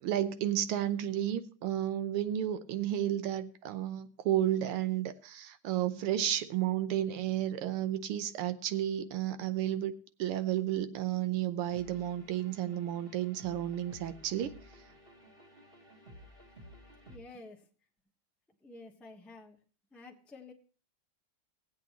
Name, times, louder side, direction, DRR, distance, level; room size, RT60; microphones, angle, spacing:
voice 1, 0.0-9.9 10.2-14.5, right 11 dB, 85° right, 11 dB, 1.7 m, -32 dB
sound 1, 11.7-17.2, equal, 30° right, 1.5 m, -54 dB
voice 2, 17.1-17.6 18.6-19.6 19.9-20.5, left 3 dB, ahead, 0 dB, 0.6 m, -50 dB
18.0 x 8.1 x 3.0 m, 0.39 s
omnidirectional pair, 2.4 m